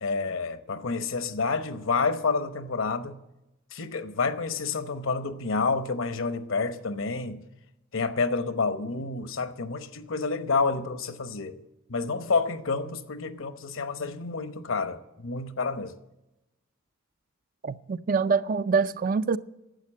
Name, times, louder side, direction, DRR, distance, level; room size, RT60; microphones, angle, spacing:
voice 1, 0.0-3.1 3.7-7.4 7.9-11.6 11.9-15.9, left 4 dB, 65° left, 0.9 m, -29 dB
voice 2, 17.6-19.4, right 5 dB, 40° right, 0.4 m, -25 dB
11.5 x 8.3 x 8.5 m
head